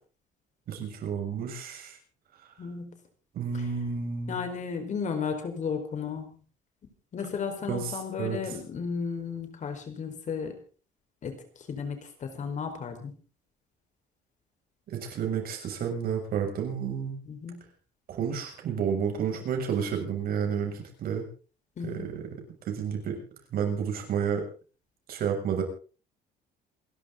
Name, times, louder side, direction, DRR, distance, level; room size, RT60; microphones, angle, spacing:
voice 1, 0.7-2.0 3.3-4.4 7.7-8.4 14.9-17.2 18.1-21.2 21.8-23.2 23.5-24.4 25.1-25.6, right 7 dB, 60° right, 3 dB, 6.7 m, -31 dB
voice 2, 2.6-2.9 4.3-6.3 7.1-10.6 11.2-11.4 11.7-13.1 17.3-17.6 21.8-22.1, left 6 dB, 45° left, 7 dB, 4.6 m, -34 dB
28.0 x 12.0 x 3.9 m, 0.38 s
cardioid pair, 110°, 17 cm